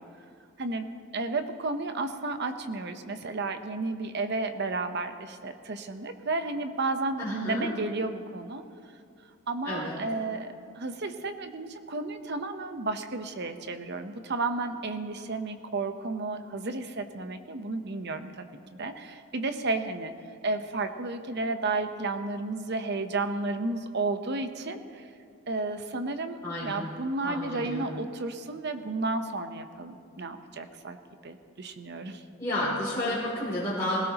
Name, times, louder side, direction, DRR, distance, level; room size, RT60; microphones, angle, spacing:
voice 1, 0.6-8.6 9.5-18.4 18.7-20.1 20.4-25.1 25.5-31.0 31.2-32.2, right 3 dB, 55° right, 8 dB, 0.9 m, -32 dB
voice 2, 7.2-7.7 9.6-10.0 26.4-26.9 27.2-27.9 32.4-34.0, left 1 dB, 15° left, -9 dB, 3.1 m, -31 dB
20.0 x 17.0 x 3.0 m, 2.4 s
head